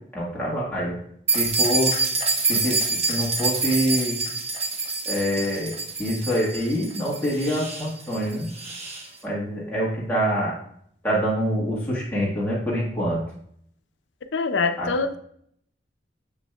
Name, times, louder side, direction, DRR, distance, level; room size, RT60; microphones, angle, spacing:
voice 1, 0.1-0.9 1.3-2.0 2.5-4.2 5.0-5.7 6.0-8.5 9.2-10.6 11.0-13.2 14.8-14.9, equal, 10° left, -6 dB, 1.4 m, -25 dB
sound 1, 1.3-9.1, right 3 dB, 35° right, 1.2 m, -26 dB
voice 2, 14.3-15.2, left 4 dB, 85° left, 9 dB, 0.6 m, -24 dB
7.1 x 7.0 x 2.3 m, 0.67 s
head